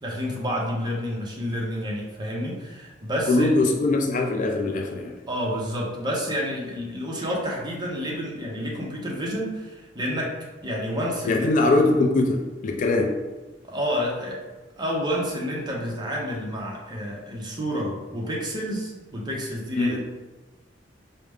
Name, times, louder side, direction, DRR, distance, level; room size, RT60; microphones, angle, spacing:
voice 1, 0.0-3.8 5.3-10.3 10.6-11.7 13.6-14.4 14.8-20.0, equal, 25° right, -3 dB, 0.8 m, -29 dB
voice 2, 3.3-5.2 11.3-13.2 19.8-20.0, left 2 dB, 45° left, 2 dB, 0.4 m, -22 dB
4.7 x 2.1 x 3.5 m, 1.2 s
head